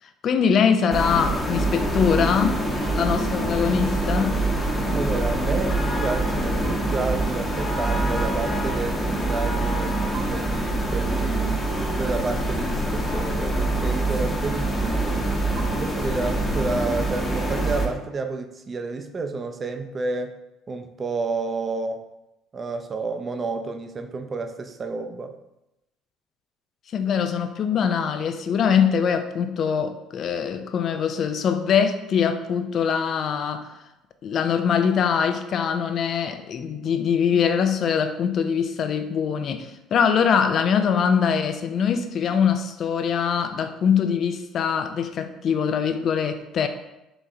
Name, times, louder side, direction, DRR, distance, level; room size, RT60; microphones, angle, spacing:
voice 1, 0.2-2.6 2.9-4.4 26.9-33.7 34.2-46.7, left 7 dB, 55° left, 8 dB, 0.4 m, -23 dB
sound 1, 0.9-17.9, right 1 dB, 20° left, 0.9 m, -25 dB
sound 2, 1.7-16.4, right 2 dB, 70° right, 1.1 m, -40 dB
voice 2, 4.9-11.5 12.0-15.3 15.7-20.3 20.7-22.0 22.5-25.3, right 3 dB, 35° right, 6 dB, 0.5 m, -30 dB
4.0 x 3.2 x 3.6 m, 0.93 s
supercardioid pair, 85°, 0 cm